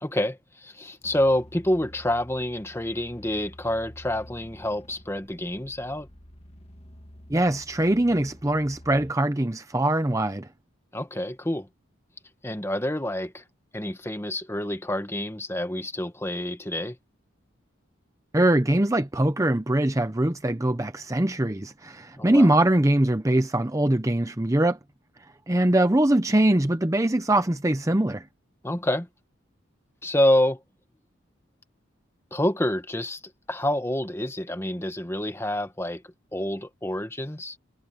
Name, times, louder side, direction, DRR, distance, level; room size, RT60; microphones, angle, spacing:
voice 1, 0.0-6.1 10.9-11.7 12.4-13.4 13.7-17.0 22.2-22.5 28.6-29.1 30.0-30.6 32.3-33.2 33.5-36.0 36.3-37.6, left 1 dB, 10° left, 1.2 m, -27 dB
sound 1, 1.0-9.1, equal, 30° left, 1.7 m, -49 dB
voice 2, 7.3-10.5 18.3-24.8 25.5-28.2, right 1 dB, 15° right, 0.7 m, -22 dB
head